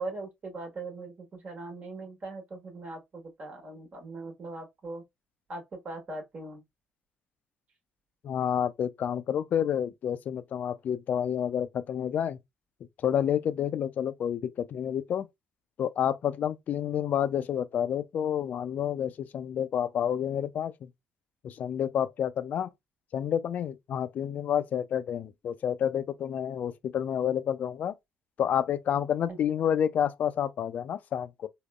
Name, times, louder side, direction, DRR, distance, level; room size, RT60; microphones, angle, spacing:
voice 1, 0.0-5.0 5.5-6.6 29.3-29.4, right 2 dB, 45° right, 1.3 m, -40 dB
voice 2, 8.2-12.4 13.0-15.3 15.8-20.9 21.4-22.7 23.1-27.9 28.4-31.5, left 9 dB, 55° left, 0.4 m, -29 dB
3.6 x 2.0 x 2.3 m
hypercardioid pair, 55°, 3 cm